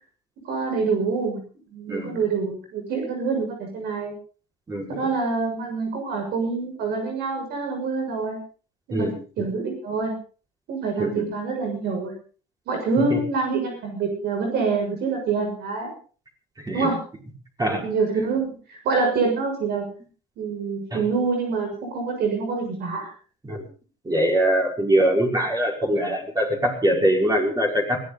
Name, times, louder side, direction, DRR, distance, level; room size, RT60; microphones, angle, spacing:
voice 1, 0.4-1.4 1.7-4.1 4.9-8.4 8.9-10.1 10.7-12.1 12.7-15.9 16.7-17.0 17.8-19.9 20.4-23.1, right 4 dB, 75° right, 3 dB, 6.7 m, -26 dB
voice 2, 4.7-5.1 8.9-9.5 11.0-11.3 13.1-13.2 16.6-16.9 17.6-17.9 20.9-21.0 23.4-23.7 24.1-28.0, right 1 dB, 20° right, 0 dB, 5.5 m, -23 dB
21.5 x 16.5 x 4.1 m, 0.39 s
cardioid pair, 110°, 17 cm